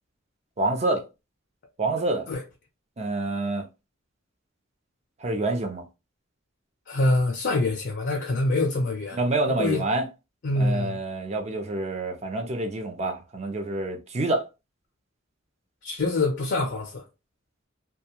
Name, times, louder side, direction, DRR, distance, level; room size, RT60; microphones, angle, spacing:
voice 1, 0.6-1.0 1.8-2.3 3.0-3.6 5.2-5.8 9.1-10.1 10.5-14.4, right 2 dB, 35° right, 0.5 m, -27 dB
voice 2, 6.9-9.2 9.5-9.8 10.4-11.0 15.8-17.0, left 2 dB, 60° left, 0.5 m, -25 dB
2.3 x 2.2 x 2.8 m
head